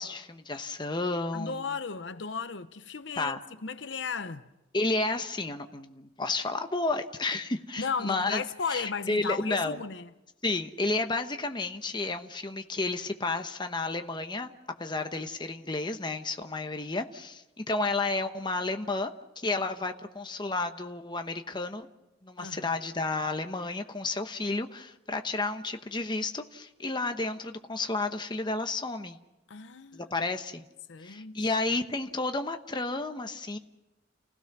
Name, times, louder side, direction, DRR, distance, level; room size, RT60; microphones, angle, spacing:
voice 1, 0.0-1.6 3.2-3.4 4.7-8.4 8.7-9.8 10.4-14.5 14.8-19.1 19.4-21.9 22.2-29.2 29.9-30.6 31.0-33.6, left 3 dB, 25° left, 1.0 m, -31 dB
voice 2, 1.3-4.4 7.8-10.1 22.4-22.7 29.5-30.1 30.9-31.5, left 5 dB, 70° left, 0.8 m, -35 dB
30.0 x 16.5 x 6.1 m
head